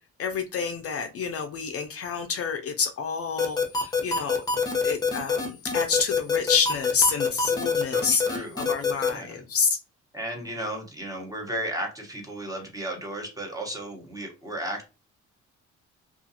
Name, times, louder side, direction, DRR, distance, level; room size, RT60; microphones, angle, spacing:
voice 1, 0.2-4.4 4.8-9.8, left 6 dB, 50° left, 6 dB, 0.4 m, -28 dB
sound 1, 3.4-9.1, left 5 dB, 15° left, 0.8 m, -25 dB
voice 2, 7.9-8.6 9.0-9.4 10.1-14.8, right 1 dB, 10° right, 0 dB, 1.0 m, -34 dB
2.4 x 2.4 x 2.7 m, 0.30 s
cardioid pair, 90°, 30 cm